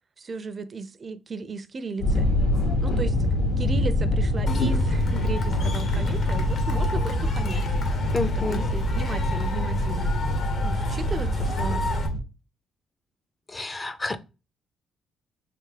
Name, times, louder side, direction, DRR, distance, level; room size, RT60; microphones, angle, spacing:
voice 1, 0.2-2.3 2.8-3.3 3.6-7.7 8.4-10.2 10.6-11.9, right 4 dB, 40° right, 0.4 m, -35 dB
sound 1, 2.0-12.2, left 1 dB, 80° left, 1.6 m, -24 dB
Cheering / Crowd, 4.5-12.1, left 3 dB, 55° left, 0.9 m, -35 dB
voice 2, 8.1-8.6 13.5-14.2, left 3 dB, 25° left, 0.5 m, -29 dB
3.3 x 3.0 x 3.3 m
cardioid pair, 85°, 0 cm